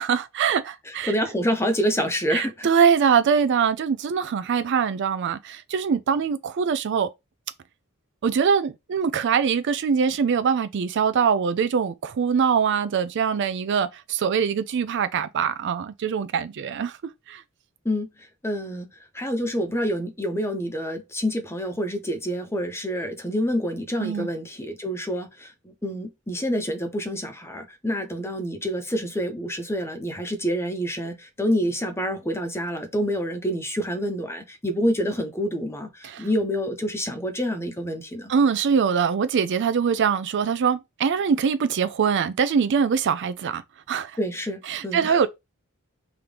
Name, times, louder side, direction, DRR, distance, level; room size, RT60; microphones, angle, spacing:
voice 1, 0.0-1.1 2.3-7.1 8.2-17.0 17.3-17.4 24.0-24.3 36.0-36.3 38.3-43.6 43.9-44.2 44.7-45.3, right 6 dB, 55° right, 0.4 m, -23 dB
voice 2, 1.1-2.7 17.8-18.1 18.4-18.9 19.1-38.3 44.2-45.2, equal, 10° left, 0.8 m, -27 dB
3.7 x 2.9 x 3.3 m
head